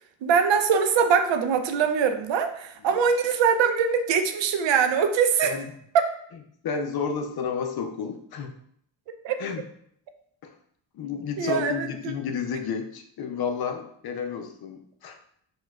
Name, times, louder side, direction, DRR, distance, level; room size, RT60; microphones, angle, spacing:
voice 1, 0.2-5.5 5.9-6.1 9.2-9.4 11.4-12.1, right 6 dB, 75° right, 8 dB, 0.5 m, -22 dB
voice 2, 6.6-8.5 9.4-9.6 10.4-10.5 10.9-15.2, left 6 dB, 55° left, 6 dB, 0.5 m, -31 dB
4.2 x 2.3 x 2.3 m, 0.67 s
cardioid pair, 65°, 46 cm